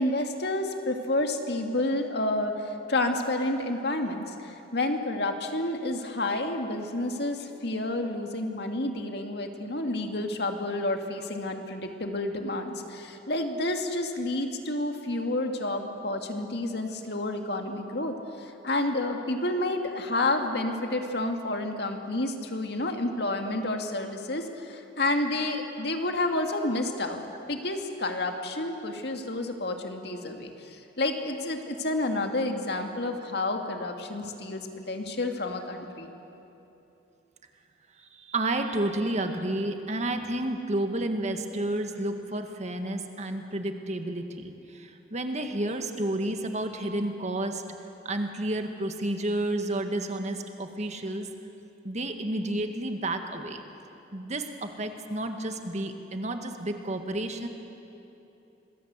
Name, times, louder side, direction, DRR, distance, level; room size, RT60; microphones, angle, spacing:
voice 1, 0.0-27.2 27.5-36.1, left 2 dB, 65° left, 4 dB, 2.2 m, -30 dB
voice 2, 38.0-47.6 48.1-51.3 51.8-53.6 54.1-57.5, right 1 dB, 40° right, 6 dB, 1.9 m, -31 dB
26.5 x 20.5 x 8.2 m, 2.9 s
head